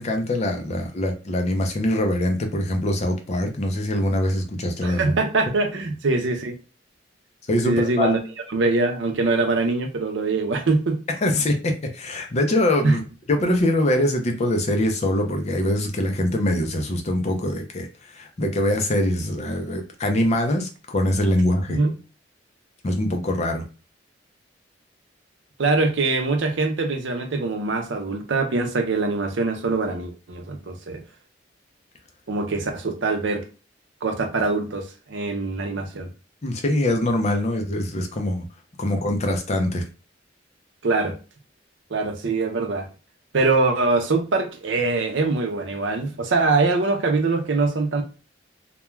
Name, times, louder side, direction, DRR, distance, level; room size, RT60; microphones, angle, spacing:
voice 1, 0.0-5.2 7.5-8.1 11.2-13.0 13.3-21.8 22.8-23.6 36.4-38.4 38.8-39.8, left 1 dB, 35° left, 0.5 m, -23 dB
voice 2, 4.8-6.6 7.6-8.2 8.5-11.0 12.8-13.0 21.7-21.9 25.6-31.0 32.3-33.4 34.0-36.1 40.8-41.2 41.9-42.9 43.3-48.0, right 3 dB, 80° right, 0.6 m, -23 dB
2.3 x 2.2 x 3.0 m
head